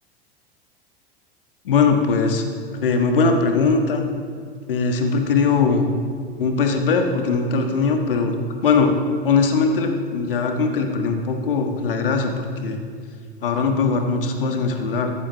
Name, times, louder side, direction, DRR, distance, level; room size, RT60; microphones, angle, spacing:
voice 1, 1.6-2.4 2.7-4.0 4.7-5.9 6.4-8.3 8.6-8.9 9.2-12.8 13.4-15.1, left 4 dB, 65° left, 4 dB, 1.5 m, -20 dB
14.0 x 14.0 x 3.4 m, 2.1 s
figure-of-eight pair, 85°, 30 cm